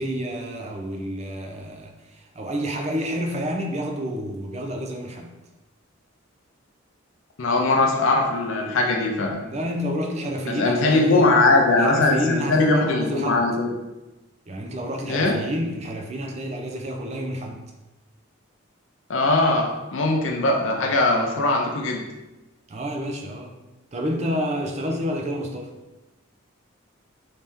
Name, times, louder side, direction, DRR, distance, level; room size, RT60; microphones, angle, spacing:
voice 1, 0.0-5.3 9.4-11.3 11.8-13.4 14.5-17.6 22.7-23.6 23.9-25.7, equal, 30° right, 2 dB, 0.4 m, -29 dB
voice 2, 7.4-9.4 10.5-13.7 15.1-15.4 19.1-22.1, left 2 dB, 70° left, 0 dB, 0.5 m, -20 dB
3.2 x 2.8 x 3.6 m, 1.1 s
head